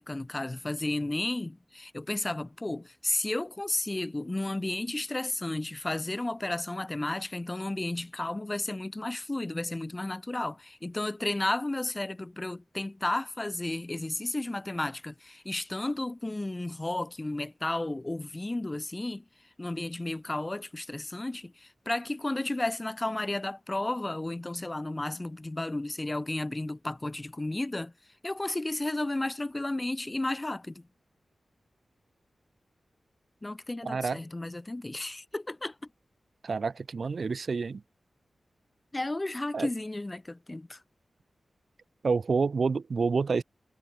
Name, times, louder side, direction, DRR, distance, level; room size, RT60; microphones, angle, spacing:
voice 1, 0.0-19.2 19.6-27.9 28.2-30.9 33.4-35.7 38.9-40.8, left 2 dB, 20° left, 2.7 m, -33 dB
voice 2, 33.8-34.2 36.4-37.8 39.5-39.7 42.0-43.4, right 4 dB, 60° right, 1.2 m, -28 dB
wide cardioid pair, 120°, 0 cm